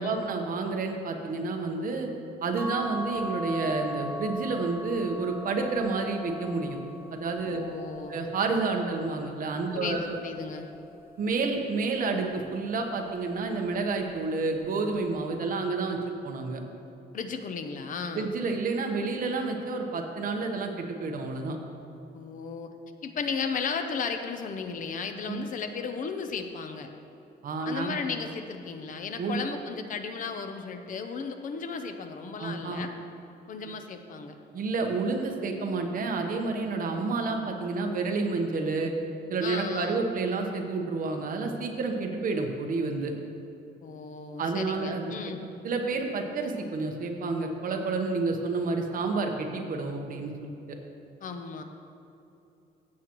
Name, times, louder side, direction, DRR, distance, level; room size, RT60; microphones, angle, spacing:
voice 1, 0.0-2.1 2.4-6.8 7.1-7.6 8.1-10.2 11.2-16.6 18.1-21.6 25.3-25.4 27.4-28.0 29.2-29.4 32.4-32.8 34.5-38.9 39.3-43.1 44.4-45.1 45.4-50.3 50.7-50.8, right 3 dB, 55° right, 3 dB, 1.0 m, -30 dB
sound 1, 2.6-9.2 9.8-11.2 12.5-12.9 13.2-13.3, left 1 dB, 15° right, 0.7 m, -40 dB
voice 2, 7.5-8.2 9.7-10.7 17.1-18.3 22.1-22.7 23.0-26.9 27.6-32.9 33.5-34.4 39.4-40.1 43.8-45.5 51.2-51.6, left 5 dB, 50° left, 7 dB, 0.6 m, -35 dB
15.5 x 7.5 x 3.0 m, 2.9 s
cardioid pair, 170°, 18 cm